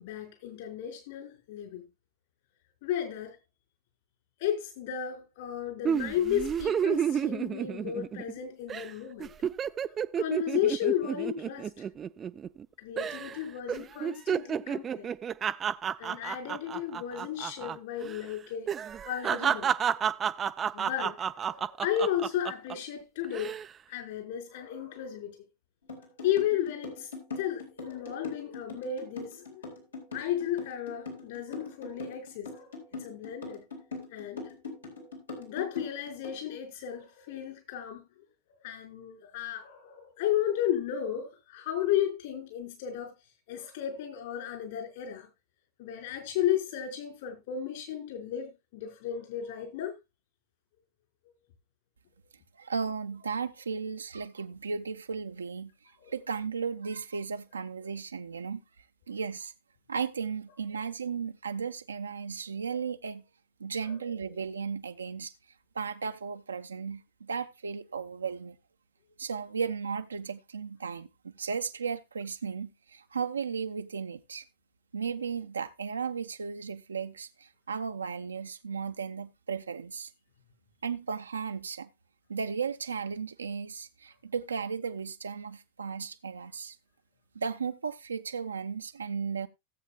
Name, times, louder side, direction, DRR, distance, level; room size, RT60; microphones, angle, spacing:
voice 1, 0.0-1.9 2.8-3.4 4.4-9.3 10.2-11.7 12.8-15.1 16.0-18.7 19.0-19.7 20.7-23.6 23.9-25.4 26.2-27.1 27.4-29.6 30.1-32.7 33.0-33.6 34.1-34.5 35.4-38.0 38.5-43.1 43.5-45.3 45.8-50.0 56.0-56.1 60.7-60.8 63.8-64.3, left 10 dB, 55° left, 4.8 m, -33 dB
sound 1, 5.8-8.4 8.7-8.9 9.2-12.6 13.0-13.4 13.7-17.8 18.0-18.2 18.7-22.7 23.2-23.7, right 8 dB, 25° right, 0.5 m, -31 dB
sound 2, 25.9-36.4, left 3 dB, 75° left, 4.0 m, -41 dB
voice 2, 52.5-55.7 56.1-58.6 59.1-59.5 59.9-63.2 63.6-65.3 65.7-68.6 69.2-74.4 74.9-80.1 80.8-81.9 82.3-86.8 87.3-89.5, right 6 dB, 75° right, 0.8 m, -35 dB
17.5 x 8.2 x 2.3 m
figure-of-eight pair, 90°, 0 cm